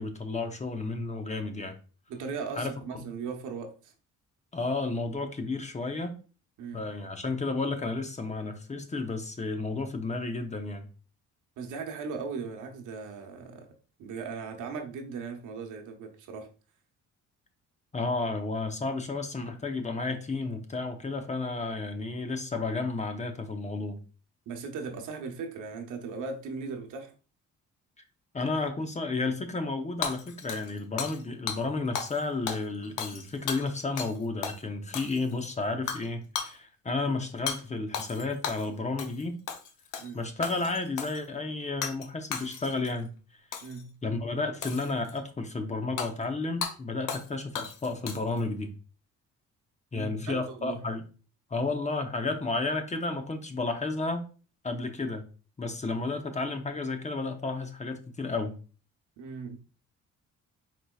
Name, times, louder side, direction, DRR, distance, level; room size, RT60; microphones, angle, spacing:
voice 1, 0.0-1.8 2.6-3.0 4.5-6.1 6.7-10.9 17.9-24.0 28.3-39.4 40.1-43.1 44.0-48.7 49.9-51.1 51.5-54.2 54.6-55.2 55.6-58.6, left 3 dB, 25° left, 0.7 m, -32 dB
voice 2, 2.1-3.9 6.6-6.9 11.6-13.7 14.0-16.5 24.5-27.1 40.0-40.2 43.6-43.9 49.9-50.8 59.2-59.6, right 5 dB, 80° right, 0.9 m, -38 dB
Hammer / Shatter, 30.0-31.2 31.5-31.6 31.9-32.2 32.5-34.2 34.4-34.6 34.9-35.4 35.9-36.1 36.3-36.5 37.5-37.6 37.9-38.7 39.0-39.2 39.5-40.1 40.4-41.2 41.8-42.1 42.3-42.9 43.5-43.8 44.6-45.2 46.0-46.1 46.6-46.7 47.1-47.3 47.5-48.4, left 7 dB, 85° left, 0.7 m, -35 dB
4.4 x 4.2 x 2.3 m
cardioid pair, 90°, 30 cm